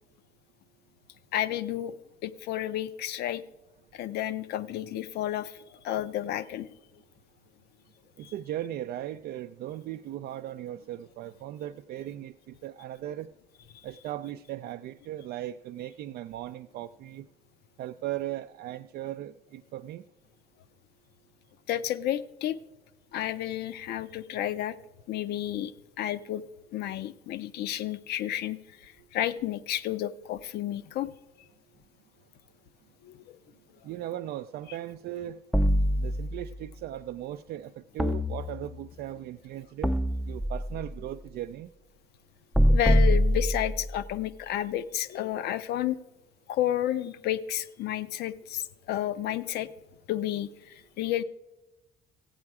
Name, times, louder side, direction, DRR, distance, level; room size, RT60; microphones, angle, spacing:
voice 1, 1.3-2.0 2.2-3.4 3.9-6.7 8.2-8.3 21.7-22.6 23.1-24.8 25.1-25.7 26.0-26.4 26.7-31.1 33.0-33.4 42.7-46.0 46.5-49.7 50.1-51.2, left 12 dB, 75° left, 14 dB, 0.6 m, -31 dB
voice 2, 8.2-13.3 13.8-17.3 17.8-20.0 33.8-35.4 36.0-39.9 40.3-41.7, right 12 dB, 65° right, 7 dB, 0.4 m, -38 dB
sound 1, 35.5-36.6 38.0-39.0 39.8-40.9 42.5-44.0, equal, ahead, 0.4 m, -24 dB
15.0 x 8.7 x 4.7 m, 1.0 s
cardioid pair, 110°, 17 cm